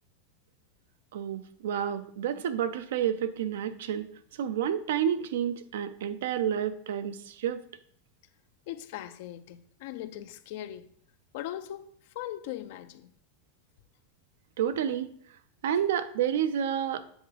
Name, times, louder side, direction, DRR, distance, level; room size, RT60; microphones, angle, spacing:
voice 1, 1.1-4.1 4.4-7.6 14.6-15.1 15.6-17.0, right 9 dB, 85° right, 0.5 m, -29 dB
voice 2, 8.7-10.9 11.3-13.1, left 13 dB, 65° left, 0.4 m, -40 dB
7.9 x 3.6 x 3.4 m
supercardioid pair, 150°, 0 cm